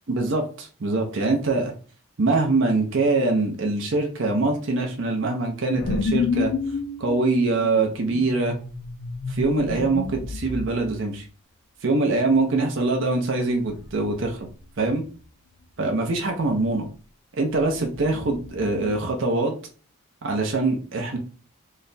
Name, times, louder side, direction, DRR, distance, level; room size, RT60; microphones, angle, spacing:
voice 1, 0.1-1.7 2.2-6.5 7.0-8.6 9.3-11.2 11.8-14.4 14.8-15.0 15.8-16.9 17.3-19.5 20.2-21.2, right 3 dB, 55° right, 2 dB, 0.6 m, -23 dB
sound 1, 5.8-10.9 13.6-14.4 14.6-15.1 17.5-19.0, left 4 dB, 55° left, 0.4 m, -30 dB
3.2 x 2.2 x 3.9 m, 0.39 s
head